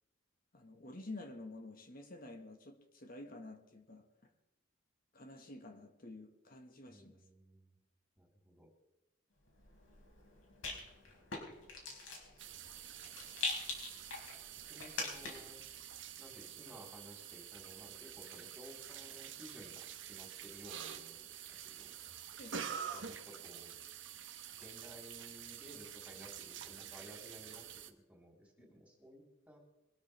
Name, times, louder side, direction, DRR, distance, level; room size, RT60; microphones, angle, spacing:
voice 1, 0.5-4.0 5.1-7.2 22.4-22.6 28.6-28.7, left 2 dB, 45° left, 1.7 m, -50 dB
voice 2, 6.9-7.8 8.2-8.7 11.1-11.8 14.7-15.6 16.2-21.9 22.8-23.7 24.6-29.6, equal, 5° right, 3.9 m, -56 dB
Rattle, 9.5-15.6, left 3 dB, 90° left, 4.8 m, -44 dB
sound 1, 12.4-27.9, right 8 dB, 70° right, 1.1 m, -48 dB
23.0 x 13.0 x 3.5 m
head